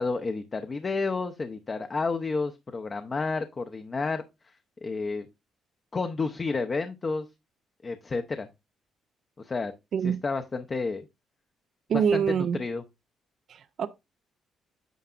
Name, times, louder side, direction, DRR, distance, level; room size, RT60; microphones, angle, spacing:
voice 1, 0.0-4.2 4.8-5.2 5.9-7.3 7.8-8.5 9.4-9.7 10.0-11.0 11.9-12.2 12.6-12.8, left 4 dB, 40° left, 0.7 m, -30 dB
voice 2, 11.9-12.6 13.5-13.9, right 7 dB, 65° right, 0.5 m, -25 dB
9.2 x 5.7 x 2.4 m
supercardioid pair, 65°, 0 cm